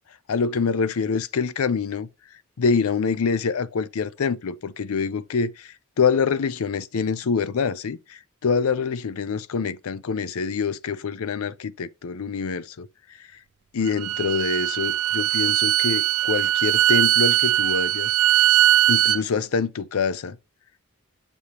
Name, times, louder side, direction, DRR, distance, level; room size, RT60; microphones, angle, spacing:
voice 1, 0.3-2.1 2.6-12.9 13.7-18.1 18.9-20.4, left 5 dB, 80° left, 0.5 m, -25 dB
Bowed string instrument, 13.8-19.2, right 12 dB, 80° right, 0.4 m, -20 dB
7.0 x 4.9 x 2.9 m
head